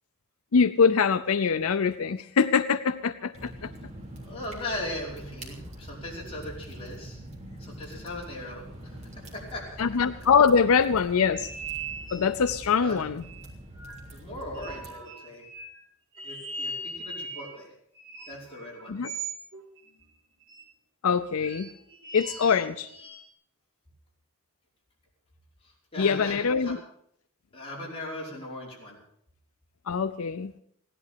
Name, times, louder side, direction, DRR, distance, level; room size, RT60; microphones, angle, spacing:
voice 1, 0.5-3.7 9.8-11.5 12.1-13.2 18.9-19.1 21.0-21.7 22.1-22.9 26.0-26.8 29.9-30.5, left 6 dB, 75° left, 12 dB, 0.5 m, -23 dB
sound 1, 3.3-14.9, right 1 dB, 30° right, 3.3 m, -44 dB
voice 2, 4.2-7.2 7.6-9.8 12.8-13.0 14.1-15.5 16.2-17.7 18.3-19.0 19.9-20.0 25.6-26.7 27.5-29.0, left 1 dB, 25° left, -4 dB, 5.4 m, -39 dB
sound 2, 11.3-12.6 13.2-14.2 14.5-15.8 16.1-17.6 17.9-20.1 20.4-20.6 21.4-23.2, right 3 dB, 65° right, 3.6 m, -39 dB
16.5 x 11.0 x 6.8 m, 0.67 s
head